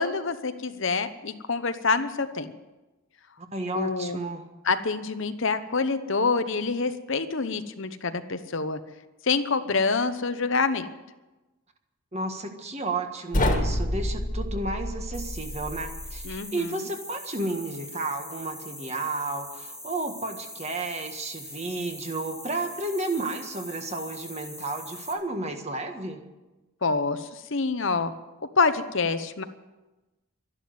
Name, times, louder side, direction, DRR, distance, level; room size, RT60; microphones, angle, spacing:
voice 1, 0.0-2.5 3.7-4.2 4.6-8.8 9.2-10.9 16.2-16.9 26.8-28.1 28.6-29.4, left 4 dB, 60° left, 10 dB, 0.9 m, -26 dB
voice 2, 3.4-4.5 12.1-26.2, right 2 dB, 30° right, 5 dB, 1.5 m, -32 dB
sound 1, 13.3-16.4, left 1 dB, 35° left, 1.9 m, -28 dB
sound 2, 15.1-25.1, left 1 dB, 5° right, 2.0 m, -42 dB
12.5 x 11.5 x 9.4 m, 1.1 s
head